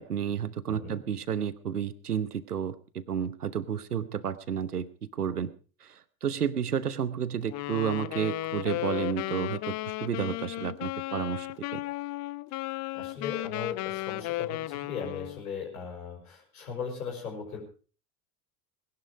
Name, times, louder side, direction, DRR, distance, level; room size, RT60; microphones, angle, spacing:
voice 1, 0.0-5.5 5.8-9.8 10.0-11.8, right 8 dB, 85° right, 17 dB, 1.0 m, -31 dB
voice 2, 0.7-1.0 12.9-17.6, left 6 dB, 75° left, 2 dB, 6.2 m, -38 dB
Wind instrument woodwind instrument, 7.5-15.4, left 18 dB, 40° left, 0.7 m, -34 dB
20.0 x 11.5 x 4.9 m, 0.38 s
figure-of-eight pair, 70°, 44 cm